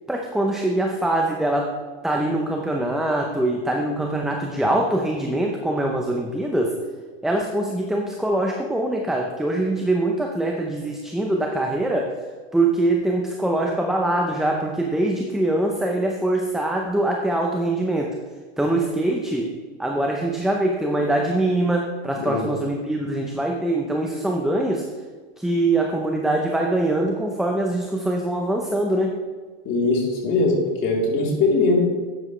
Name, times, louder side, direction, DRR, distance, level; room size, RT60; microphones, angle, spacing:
voice 1, 0.1-6.8 7.2-12.2 12.5-18.1 18.6-24.9 25.4-29.2, right 1 dB, ahead, 1 dB, 0.7 m, -23 dB
voice 2, 22.2-22.5 29.7-31.8, left 3 dB, 40° left, -2 dB, 3.5 m, -21 dB
12.0 x 9.0 x 3.2 m, 1.4 s
supercardioid pair, 135°, 32 cm